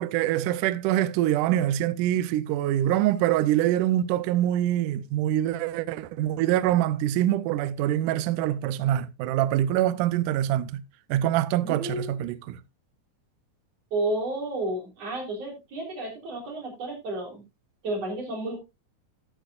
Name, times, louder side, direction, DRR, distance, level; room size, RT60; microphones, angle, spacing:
voice 1, 0.0-10.8 11.1-12.6, right 13 dB, 80° right, 1.9 m, -25 dB
voice 2, 11.6-12.1 13.9-17.4 17.8-18.6, right 2 dB, 40° right, 4.5 m, -31 dB
14.0 x 8.8 x 2.4 m
omnidirectional pair, 4.4 m